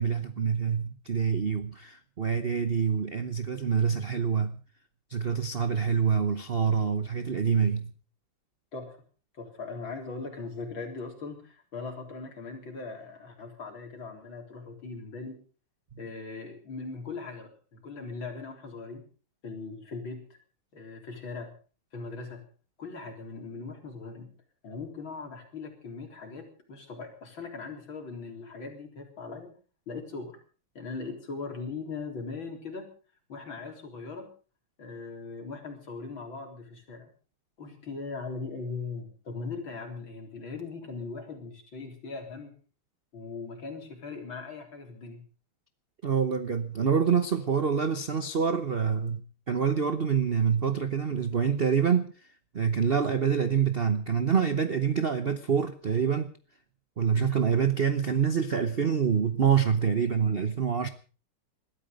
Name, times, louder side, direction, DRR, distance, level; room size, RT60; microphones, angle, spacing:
voice 1, 0.0-4.6 5.1-7.9 46.0-52.1 52.5-56.3 57.0-60.9, right 6 dB, 55° right, 0.6 m, -26 dB
voice 2, 9.3-15.4 16.0-19.0 19.4-20.4 20.7-21.5 21.9-22.5 22.8-24.3 24.6-29.5 29.9-30.4 30.7-32.9 33.3-34.3 34.8-37.1 37.6-42.5 43.1-45.2 57.1-57.3, left 4 dB, 65° left, 4.6 m, -39 dB
20.5 x 13.5 x 5.2 m
omnidirectional pair, 2.4 m